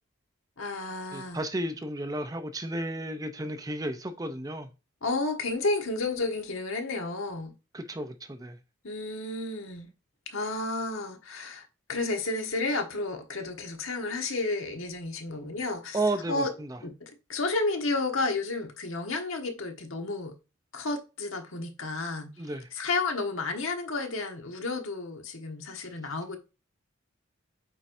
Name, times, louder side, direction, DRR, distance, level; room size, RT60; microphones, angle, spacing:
voice 1, 0.6-1.4 5.0-7.5 8.8-9.9 10.3-16.0 16.3-16.5 16.8-20.3 20.7-22.3 22.7-26.4, left 3 dB, 80° left, 1.3 m, -31 dB
voice 2, 1.1-4.7 7.7-8.6 15.9-16.8 22.4-22.7 25.8-25.9, right 1 dB, 15° right, 0.5 m, -33 dB
8.3 x 4.6 x 2.6 m
head